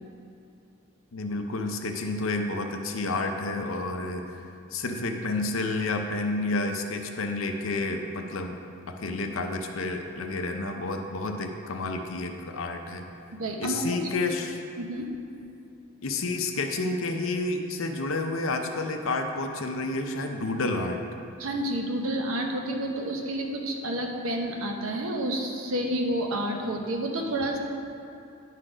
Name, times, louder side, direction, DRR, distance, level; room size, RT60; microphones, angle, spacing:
voice 1, 1.1-4.4 4.7-8.6 8.9-13.1 13.6-14.6 16.0-21.0, left 2 dB, 70° left, 4 dB, 0.7 m, -30 dB
voice 2, 13.3-14.3 14.8-15.1 21.4-27.6, right 1 dB, 80° right, 2 dB, 0.9 m, -30 dB
11.0 x 4.2 x 4.9 m, 2.6 s
head